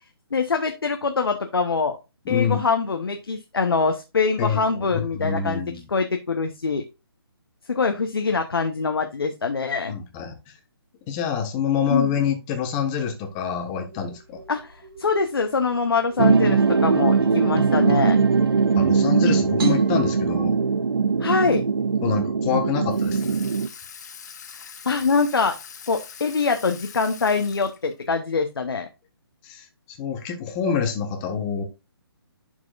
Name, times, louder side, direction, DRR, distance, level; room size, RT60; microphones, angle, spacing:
voice 1, 0.3-2.0 2.3-5.6 5.9-6.8 7.7-9.9 11.9-12.1 14.5-18.2 21.2-21.6 24.8-25.6 25.9-28.9, left 4 dB, 65° left, 1.1 m, -24 dB
voice 2, 2.2-2.6 4.4-5.9 9.9-10.4 11.1-14.4 18.7-20.6 22.0-23.4 29.4-29.6 30.0-31.6, left 7 dB, 20° left, 1.3 m, -26 dB
sound 1, 13.9-20.4, right 4 dB, 55° right, 3.7 m, -42 dB
sound 2, 16.2-23.7, right 5 dB, 70° right, 0.6 m, -20 dB
Water tap faucet / Sink (filling or washing), 22.9-28.1, left 7 dB, 40° left, 1.1 m, -43 dB
11.0 x 4.6 x 2.5 m
figure-of-eight pair, 140°, 13 cm